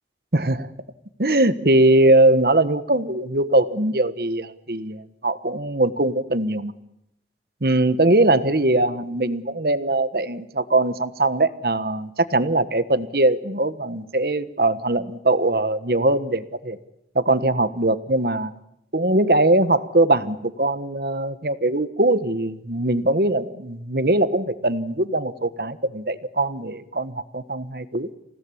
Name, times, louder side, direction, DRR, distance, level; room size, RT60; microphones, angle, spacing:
voice 1, 0.3-0.7 1.2-6.7 7.6-16.8 17.1-18.5 18.9-28.1, right 2 dB, 60° right, 13 dB, 1.4 m, -21 dB
28.5 x 17.5 x 9.9 m, 0.83 s
head